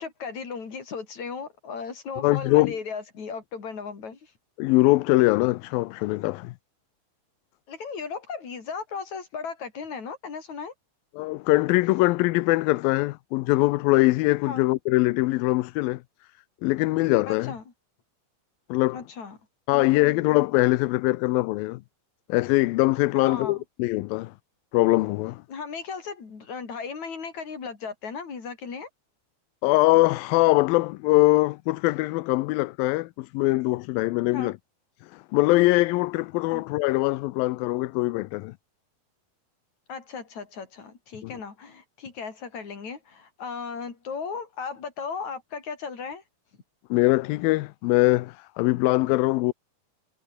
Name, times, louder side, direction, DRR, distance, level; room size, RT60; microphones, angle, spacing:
voice 1, 0.0-4.3 7.7-10.7 14.5-14.7 17.3-17.6 18.9-19.4 19.7-20.3 23.2-23.6 25.5-28.9 34.3-34.6 36.5-36.6 39.9-46.2, left 5 dB, 50° left, 5.5 m, -36 dB
voice 2, 2.2-2.7 4.6-6.5 11.2-16.0 16.6-17.5 18.7-19.0 19.7-21.8 22.3-24.3 24.7-25.4 29.6-34.6 35.1-38.5 46.9-49.5, left 20 dB, 80° left, 2.4 m, -22 dB
omnidirectional pair, 4.2 m